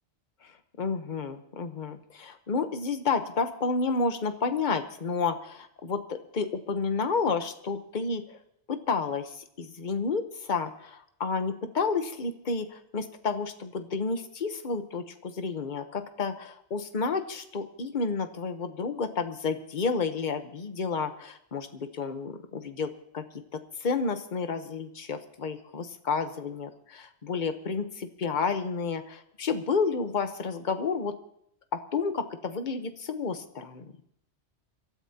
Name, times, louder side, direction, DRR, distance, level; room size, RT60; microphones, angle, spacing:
voice 1, 0.8-8.4 8.7-23.2 23.5-31.2 31.7-33.8, left 4 dB, 45° left, 8 dB, 1.1 m, -31 dB
27.0 x 13.0 x 2.9 m, 0.74 s
omnidirectional pair, 1.2 m